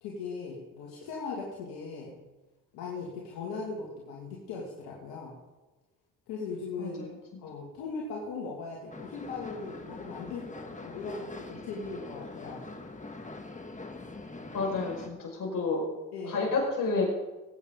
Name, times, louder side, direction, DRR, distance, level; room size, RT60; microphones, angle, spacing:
voice 1, 0.0-2.1 2.7-5.3 6.3-7.0 7.4-12.6 16.1-16.5, left 4 dB, 85° left, -3 dB, 2.3 m, -39 dB
voice 2, 6.8-7.1 14.5-15.8 16.2-17.1, left 3 dB, 60° left, -1 dB, 5.5 m, -30 dB
sound 1, 8.9-15.1, left 2 dB, 20° left, 1.7 m, -43 dB
20.0 x 8.8 x 3.8 m, 1.1 s
supercardioid pair, 60°, 37 cm